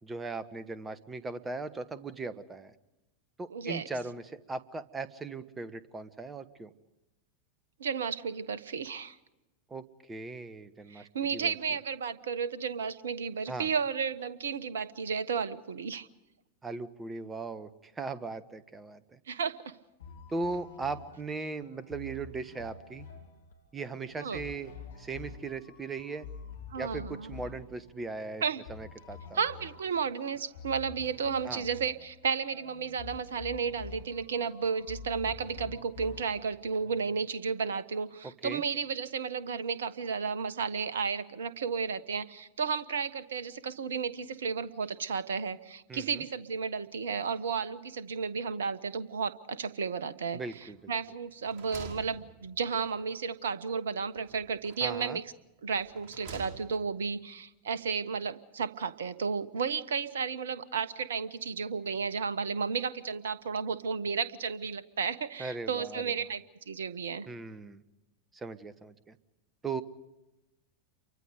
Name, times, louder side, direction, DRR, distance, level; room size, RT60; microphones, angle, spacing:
voice 1, 0.0-2.7 3.4-6.7 9.7-11.5 13.5-13.7 16.6-19.2 20.3-23.1 23.7-24.7 25.0-26.3 26.8-28.4 28.7-29.4 31.4-31.6 38.4-38.6 45.9-46.2 50.3-50.9 54.8-55.2 65.4-66.2 67.3-67.8 68.3-69.2 69.6-69.8, right 3 dB, 15° right, 14 dB, 1.4 m, -38 dB
voice 2, 3.5-3.9 7.8-9.2 10.9-16.1 19.3-19.7 24.2-24.4 26.7-27.4 28.4-28.6 29.3-55.2 55.6-67.3, right 6 dB, 65° right, 15 dB, 1.1 m, -33 dB
sound 1, 20.0-37.3, left 5 dB, 65° left, 3.1 m, -48 dB
sound 2, 50.5-51.0 51.3-52.9 54.2-55.0 55.7-57.0, right 4 dB, 35° right, 5.5 m, -48 dB
29.0 x 24.0 x 5.2 m, 0.98 s
figure-of-eight pair, 90°, 0 cm